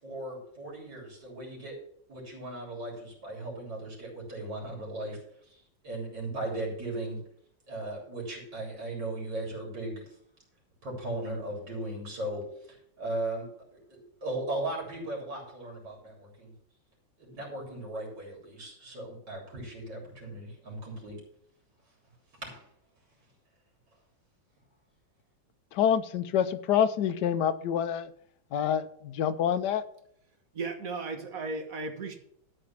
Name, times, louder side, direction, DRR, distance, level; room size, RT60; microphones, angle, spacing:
voice 1, 0.0-1.8 2.1-7.2 7.7-10.2 10.8-16.5 17.2-21.2 22.4-22.7, right 1 dB, 65° right, -1 dB, 3.9 m, -37 dB
voice 2, 25.7-28.1 28.5-29.8, left 9 dB, 70° left, 11 dB, 1.2 m, -27 dB
voice 3, 30.5-32.2, right 3 dB, 50° right, 5 dB, 1.8 m, -35 dB
13.0 x 4.5 x 7.2 m, 0.69 s
omnidirectional pair, 2.0 m